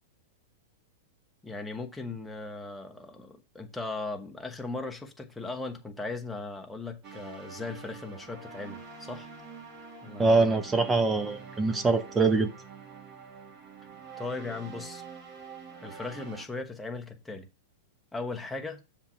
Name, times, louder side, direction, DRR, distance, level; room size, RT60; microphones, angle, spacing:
voice 1, 1.4-9.3 10.0-10.6 14.2-15.0 15.8-17.5 18.1-18.8, left 3 dB, 5° left, 1.1 m, -38 dB
sound 1, 7.0-16.4, right 5 dB, 35° right, 2.0 m, -46 dB
voice 2, 10.2-12.5, right 3 dB, 15° right, 0.7 m, -24 dB
7.1 x 3.6 x 5.5 m
hypercardioid pair, 120°, 0 cm